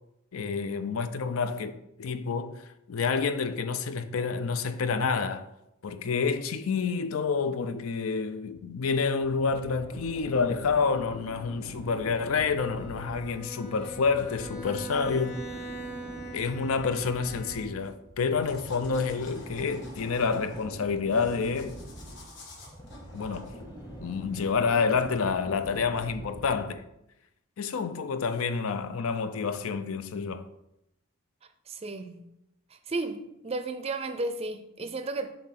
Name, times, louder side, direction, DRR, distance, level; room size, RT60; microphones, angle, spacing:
voice 1, 0.3-1.7 2.0-5.5 5.8-15.4 16.3-21.8 23.1-23.5 24.0-26.8 27.6-30.5, left 5 dB, 80° left, 0.5 m, -28 dB
sound 1, 9.2-26.8, right 1 dB, 20° left, 1.0 m, -44 dB
Bowed string instrument, 12.7-18.0, right 2 dB, 35° left, 1.5 m, -42 dB
sound 2, 18.4-24.6, left 2 dB, 55° left, 1.4 m, -51 dB
voice 2, 31.7-32.3 32.7-35.4, right 2 dB, 30° right, 0.4 m, -34 dB
7.2 x 2.7 x 5.8 m
head